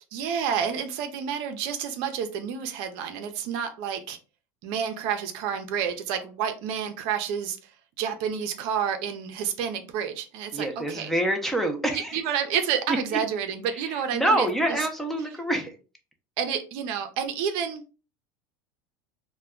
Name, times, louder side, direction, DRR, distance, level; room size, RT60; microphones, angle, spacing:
voice 1, 0.1-4.2 4.6-7.7 8.0-11.1 11.9-14.5 16.4-17.8, right 8 dB, 60° right, 0.5 m, -29 dB
voice 2, 10.5-12.2 12.9-13.0 13.7-15.8, right 1 dB, 5° left, 0.5 m, -26 dB
2.2 x 2.1 x 3.5 m
supercardioid pair, 115°, 10 cm